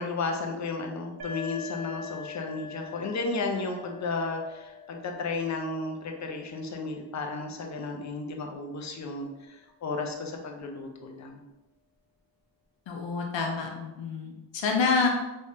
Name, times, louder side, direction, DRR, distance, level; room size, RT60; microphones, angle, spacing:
voice 1, 0.0-11.4, left 3 dB, 40° left, 3 dB, 0.6 m, -33 dB
sound 1, 1.2-8.7, left 5 dB, 55° right, 0.7 m, -44 dB
voice 2, 12.9-15.1, left 4 dB, 75° left, 1 dB, 0.7 m, -27 dB
3.4 x 3.2 x 2.7 m, 1.0 s
cardioid pair, 85°, 44 cm